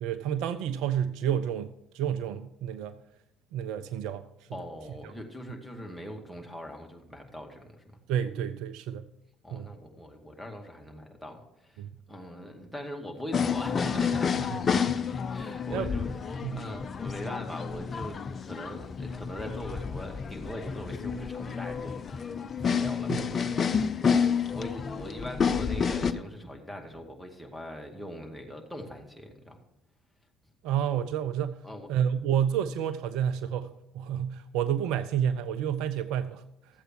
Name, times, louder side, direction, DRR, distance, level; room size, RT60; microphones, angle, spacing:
voice 1, 0.0-3.0 3.5-4.6 8.1-9.0 9.5-9.7 11.8-11.9 15.7-15.9 16.4-16.7 23.1-23.4 30.6-31.6 31.9-36.4, right 9 dB, 65° right, 0.5 m, -30 dB
voice 2, 4.5-7.8 9.4-11.8 12.1-14.5 15.0-16.2 16.6-22.3 22.6-23.2 24.5-29.6 31.6-31.9, equal, ahead, 2.1 m, -41 dB
sound 1, 13.3-26.1, left 6 dB, 40° left, 0.6 m, -30 dB
13.5 x 7.9 x 4.6 m
figure-of-eight pair, 55°, 0 cm